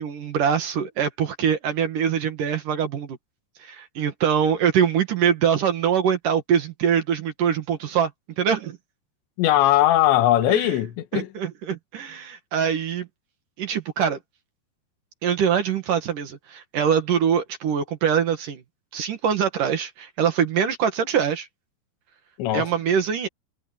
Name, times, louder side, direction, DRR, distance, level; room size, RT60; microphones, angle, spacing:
voice 1, 0.0-3.2 3.6-8.1 8.4-8.8 10.5-10.6 11.1-13.1 13.6-14.2 15.2-18.6 18.9-21.5 22.5-23.3, right 8 dB, 55° right, 2.9 m, -23 dB
voice 2, 9.4-11.3 22.4-22.7, left 13 dB, 90° left, 3.8 m, -19 dB
omnidirectional pair, 5.0 m